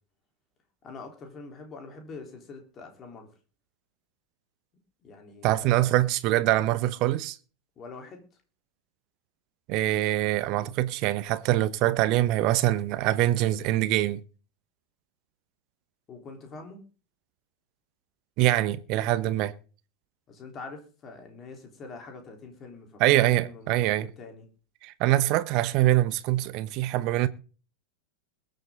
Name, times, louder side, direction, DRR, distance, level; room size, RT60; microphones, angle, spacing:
voice 1, 0.8-3.3 5.0-6.0 7.8-8.2 16.1-16.8 20.3-24.5, left 3 dB, 25° left, 3.5 m, -44 dB
voice 2, 5.4-7.4 9.7-14.2 18.4-19.5 23.0-24.1 24.8-27.3, right 15 dB, 40° right, 0.9 m, -24 dB
21.5 x 7.8 x 3.7 m
figure-of-eight pair, 90°, 0 cm